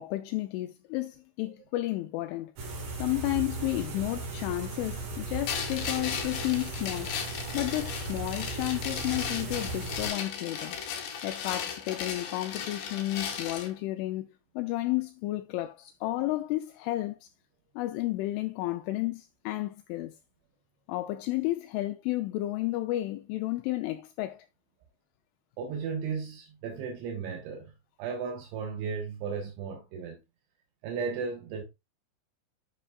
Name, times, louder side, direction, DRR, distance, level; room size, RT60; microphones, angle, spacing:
voice 1, 0.0-7.1 7.5-10.8 11.2-17.3 17.8-20.2 20.9-24.5, left 17 dB, 85° left, 2.9 m, -32 dB
sound 1, 2.6-10.1, right 3 dB, 50° right, 3.3 m, -37 dB
sound 2, 5.5-13.7, left 7 dB, 60° left, 2.7 m, -36 dB
voice 2, 25.6-27.7 28.0-30.2 30.8-31.6, right 5 dB, 75° right, 3.4 m, -35 dB
10.0 x 6.9 x 2.3 m
omnidirectional pair, 5.8 m